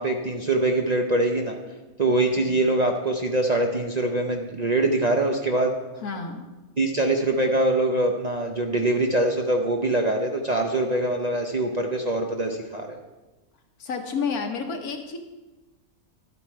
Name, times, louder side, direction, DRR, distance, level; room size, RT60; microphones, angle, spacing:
voice 1, 0.0-1.6 2.0-5.8 6.8-13.0, right 2 dB, 40° right, 2 dB, 0.6 m, -23 dB
voice 2, 6.0-6.5 13.8-15.2, left 5 dB, 80° left, 4 dB, 1.7 m, -30 dB
12.0 x 8.3 x 4.5 m, 1.1 s
omnidirectional pair, 1.5 m